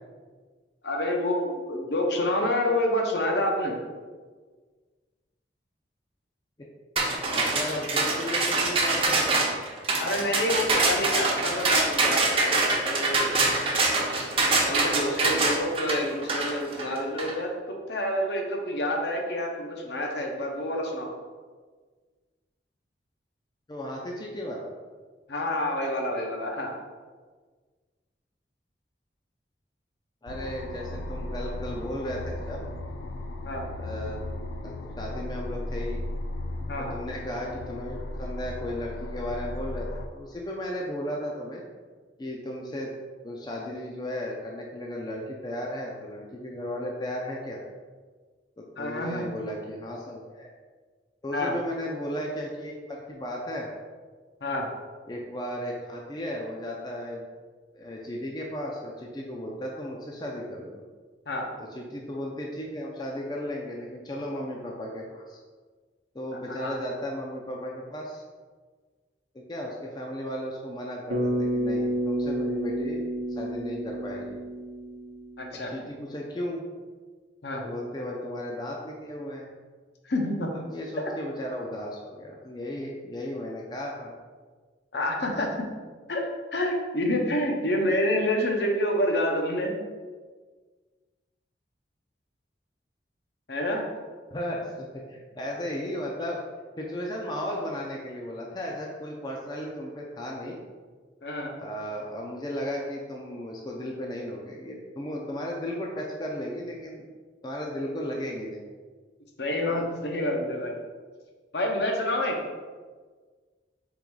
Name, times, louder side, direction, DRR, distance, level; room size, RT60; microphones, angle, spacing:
voice 1, 0.8-3.8 10.0-13.4 14.6-21.1 25.3-26.7 33.5-33.6 36.7-37.0 48.8-49.3 51.3-51.5 54.4-54.6 61.3-61.5 66.5-66.8 75.4-75.7 77.4-77.7 80.0-80.5 84.9-85.7 86.1-86.2 86.5-89.8 93.5-93.9 101.2-101.5 109.4-110.8 111.5-112.4, left 1 dB, 65° left, 1 dB, 0.7 m, -28 dB
sound 1, 7.0-17.3, right 3 dB, 30° right, 0.6 m, -25 dB
voice 2, 7.3-9.4 23.7-24.7 30.2-32.6 33.8-34.2 34.6-36.0 36.8-39.9 40.1-41.6 42.2-42.9 43.2-47.6 48.6-50.5 51.2-53.7 55.1-57.3 57.7-60.8 61.7-65.4 66.1-68.2 69.3-73.0 73.3-74.4 75.5-76.6 77.6-79.5 80.7-84.2 94.3-96.4 96.8-100.6 101.6-107.1 107.4-108.6 109.7-109.8, equal, 25° left, -1 dB, 0.4 m, -35 dB
sound 2, 30.3-40.1, left 1 dB, 90° left, 0.4 m, -36 dB
Bass guitar, 71.1-75.5, equal, 75° right, 0.7 m, -30 dB
3.8 x 3.1 x 4.6 m, 1.5 s
head